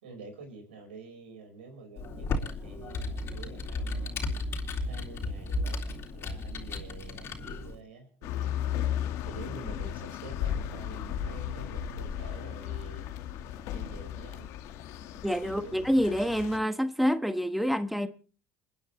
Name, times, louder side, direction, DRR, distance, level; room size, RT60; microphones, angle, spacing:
voice 1, 0.0-4.1 4.8-5.8 6.1-8.6 9.2-13.4 13.7-14.5 15.4-15.9, right 4 dB, 85° right, 4.8 m, -47 dB
Computer keyboard, 2.0-7.8, left 2 dB, 45° left, 3.6 m, -34 dB
sound 1, 8.2-16.6, left 10 dB, 65° left, 1.5 m, -35 dB
voice 2, 15.2-18.1, equal, ahead, 1.3 m, -27 dB
29.0 x 10.0 x 3.1 m
hypercardioid pair, 65°, 6 cm